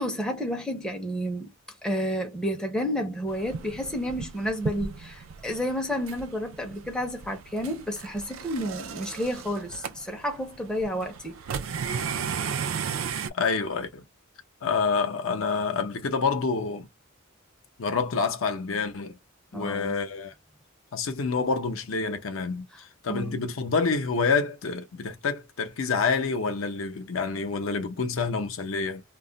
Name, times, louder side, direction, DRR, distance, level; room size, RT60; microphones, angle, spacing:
voice 1, 0.0-1.5 1.8-11.4 19.5-19.9 23.1-23.4, equal, 5° left, 0.5 m, -31 dB
sound 1, 3.3-13.3, right 6 dB, 75° right, 0.4 m, -35 dB
voice 2, 13.3-14.0 14.6-16.9 17.8-19.2 19.5-20.3 20.9-29.0, left 4 dB, 75° left, 0.6 m, -27 dB
2.3 x 2.1 x 3.7 m
head